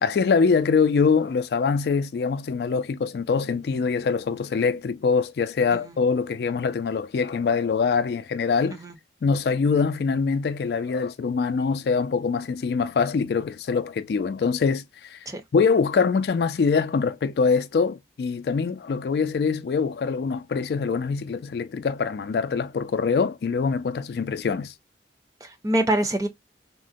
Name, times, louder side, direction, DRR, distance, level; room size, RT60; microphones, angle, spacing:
voice 1, 0.0-8.8 9.2-15.2 15.5-24.7, left 5 dB, 60° left, 0.3 m, -24 dB
voice 2, 25.4-26.3, right 1 dB, 20° right, 0.5 m, -25 dB
3.7 x 2.1 x 2.5 m
head